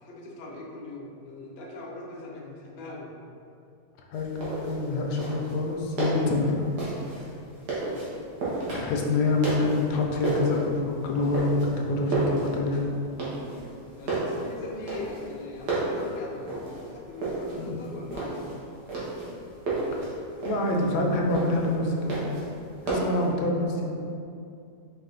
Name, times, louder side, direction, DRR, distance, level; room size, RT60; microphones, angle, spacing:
voice 1, 0.0-3.1 7.7-8.1 13.9-18.5, left 2 dB, 60° left, -2 dB, 0.6 m, -41 dB
voice 2, 4.1-6.7 8.7-12.9 17.6-17.7 19.9-20.1 20.4-22.3 22.9-23.9, left 2 dB, 80° left, 0 dB, 1.1 m, -26 dB
sound 1, 4.1-23.3, right 2 dB, 80° right, 1.6 m, -33 dB
4.7 x 2.4 x 3.7 m, 2.5 s
omnidirectional pair, 1.7 m